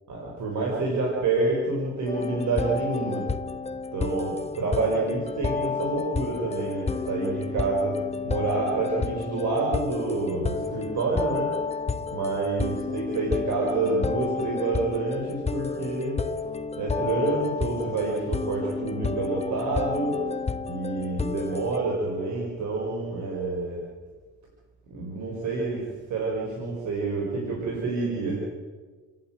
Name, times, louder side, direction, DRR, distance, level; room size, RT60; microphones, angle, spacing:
voice 1, 0.1-3.3 3.9-8.0 8.2-11.5 12.1-16.2 16.8-20.2 20.6-23.8 24.9-25.8 26.1-28.4, right 3 dB, 70° right, -2 dB, 6.1 m, -28 dB
sound 1, 2.1-21.8, left 4 dB, 20° left, 0.9 m, -31 dB
29.5 x 11.5 x 9.4 m, 1.4 s
cardioid pair, 90°, 30 cm